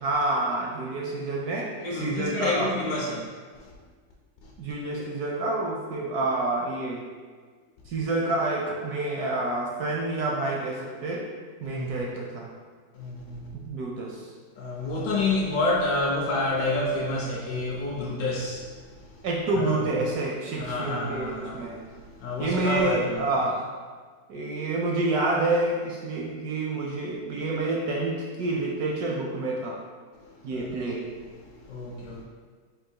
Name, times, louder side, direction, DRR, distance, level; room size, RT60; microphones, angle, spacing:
voice 1, 0.0-2.8 4.6-7.0 7.9-11.2 11.6-12.5 13.5-14.3 19.2-21.8 22.4-23.7 24.3-29.8 30.4-31.0, right 2 dB, 70° right, -2 dB, 0.9 m, -28 dB
voice 2, 1.8-3.3 11.6-12.0 12.9-13.5 14.6-18.7 19.5-19.9 20.6-21.7 22.2-23.2 30.5-30.9 31.7-32.2, left 2 dB, 65° left, -3 dB, 1.0 m, -28 dB
3.8 x 2.7 x 4.4 m, 1.5 s
omnidirectional pair, 2.0 m